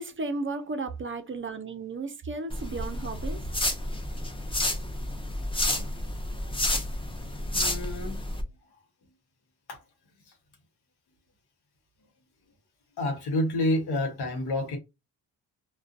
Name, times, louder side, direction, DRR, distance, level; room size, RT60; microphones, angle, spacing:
voice 1, 0.0-3.4, right 3 dB, 30° right, 0.5 m, -34 dB
sound 1, 2.5-8.4, left 1 dB, 15° left, 0.7 m, -30 dB
voice 2, 7.5-8.2 9.7-9.8 13.0-14.8, left 1 dB, 80° left, 1.0 m, -29 dB
2.5 x 2.2 x 2.4 m
supercardioid pair, 60°, 39 cm